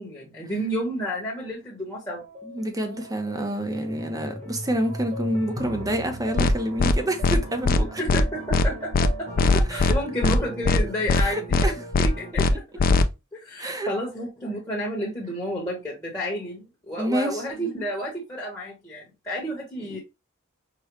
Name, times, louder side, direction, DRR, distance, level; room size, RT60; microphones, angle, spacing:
voice 1, 0.0-2.2 7.8-12.6 13.3-16.6 16.9-20.0, equal, 15° left, 1.1 m, -31 dB
sound 1, 2.1-12.3, right 1 dB, 35° right, 1.1 m, -38 dB
voice 2, 2.5-8.0 9.7-9.9 11.1-11.7 13.6-13.9 17.0-17.4 19.9-20.0, equal, 15° right, 0.7 m, -28 dB
sound 2, 6.4-6.5 6.8-6.9 7.2-7.4 7.7-7.8 8.1-8.2 8.5-8.7 8.9-9.1 9.4-9.9 10.2-10.4 10.7-10.8 11.1-11.2 11.5-11.7 11.9-12.1 12.4-12.5 12.8-13.0, left 3 dB, 40° left, 0.4 m, -19 dB
4.9 x 2.3 x 3.0 m
head